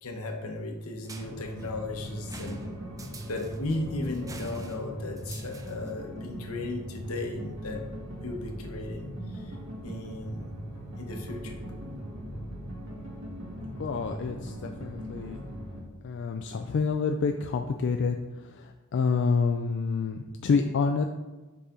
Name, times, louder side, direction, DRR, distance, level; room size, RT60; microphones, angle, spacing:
voice 1, 0.0-2.8 3.3-7.8 8.2-9.5 9.8-10.5 11.0-11.6, left 2 dB, 75° left, 3 dB, 0.9 m, -36 dB
sound 1, 1.0-6.0, right 2 dB, 15° right, 0.4 m, -46 dB
sound 2, 1.2-15.8, equal, 65° right, 1.5 m, -40 dB
voice 2, 13.8-15.4 16.0-18.2 18.6-21.0, left 5 dB, 55° left, 5 dB, 0.3 m, -28 dB
6.9 x 4.1 x 3.7 m, 1.2 s
head